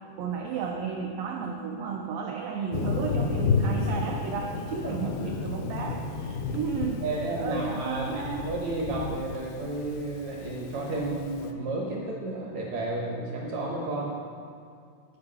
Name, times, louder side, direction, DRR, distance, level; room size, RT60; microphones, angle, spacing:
voice 1, 0.2-7.0 7.4-8.5, right 6 dB, 85° right, 1 dB, 2.0 m, -33 dB
Thunder, 2.7-11.5, left 4 dB, 85° left, 2.1 m, -32 dB
voice 2, 7.0-14.1, right 2 dB, 70° right, -2 dB, 1.7 m, -32 dB
10.5 x 7.7 x 5.6 m, 2.3 s
omnidirectional pair, 4.9 m